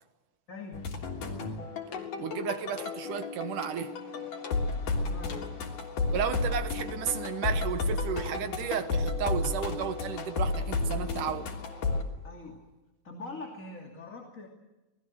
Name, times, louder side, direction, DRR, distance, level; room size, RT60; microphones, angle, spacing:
voice 1, 0.5-0.9 5.0-5.5 12.2-12.6 13.0-14.5, left 3 dB, 25° left, 2.9 m, -43 dB
sound 1, 0.7-12.0, left 3 dB, 85° left, 4.8 m, -32 dB
sound 2, 1.3-5.9, left 5 dB, 45° left, 3.2 m, -50 dB
voice 2, 2.2-3.9 6.1-11.5, right 9 dB, 80° right, 2.8 m, -33 dB
29.0 x 20.0 x 7.8 m
omnidirectional pair, 3.7 m